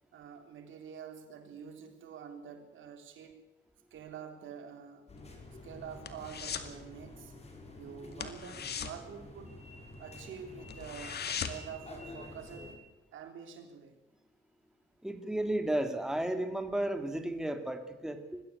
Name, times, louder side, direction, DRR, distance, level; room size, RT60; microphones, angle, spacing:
voice 1, 0.1-3.4 3.9-5.1 5.6-7.3 7.8-9.5 10.0-12.7 13.1-14.0, right 7 dB, 75° right, 5 dB, 3.7 m, -47 dB
sound 1, 5.1-12.8, left 2 dB, 30° left, 5.4 m, -49 dB
sound 2, 5.2-6.8 7.0-7.3 7.6-7.8 8.1-10.0 10.3-10.4 10.7-11.8 12.1-12.2, left 7 dB, 55° left, 2.2 m, -39 dB
voice 2, 15.0-18.4, right 1 dB, 5° right, 6 dB, 2.4 m, -33 dB
21.5 x 15.5 x 8.4 m, 1.0 s
cardioid pair, 90°, 20 cm